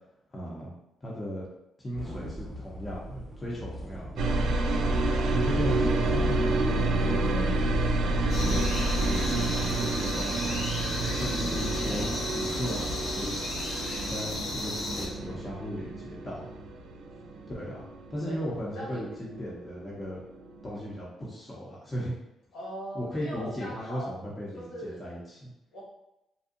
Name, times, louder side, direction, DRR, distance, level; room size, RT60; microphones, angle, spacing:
voice 1, 0.3-0.7 1.0-1.5 1.8-4.6 5.3-7.5 8.0-8.7 9.0-10.7 11.0-13.4 14.1-16.5 17.5-17.8 18.1-20.2 20.6-22.1 22.9-25.5, equal, 20° left, -5 dB, 0.7 m, -36 dB
sound 1, 1.9-15.5, equal, 10° right, 0.8 m, -41 dB
sound 2, 4.2-20.0 20.2-21.0, right 2 dB, 70° right, 0.3 m, -29 dB
sound 3, 8.3-15.1, left 1 dB, 65° left, 0.7 m, -35 dB
voice 2, 18.6-19.0 22.5-24.2 24.5-25.1 25.7-25.8, equal, 80° left, -7 dB, 1.4 m, -40 dB
2.6 x 2.3 x 2.5 m, 0.88 s
cardioid pair, 90°, 0 cm